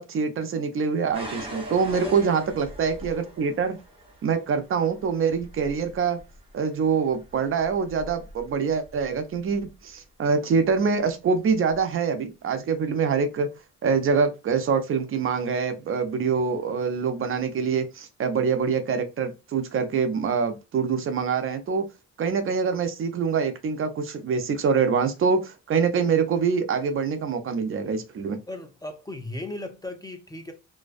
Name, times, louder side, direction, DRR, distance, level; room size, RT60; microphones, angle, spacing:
voice 1, 0.0-3.8 4.2-6.2 6.5-13.5 13.8-21.9 22.2-28.4, right 5 dB, 45° right, 0.5 m, -25 dB
sound 1, 1.1-9.9 10.7-11.1 11.7-11.8, equal, 20° right, 0.8 m, -43 dB
voice 2, 2.0-2.4 28.5-30.5, left 2 dB, 15° left, 0.4 m, -36 dB
2.5 x 2.1 x 2.4 m
cardioid pair, 90°, 30 cm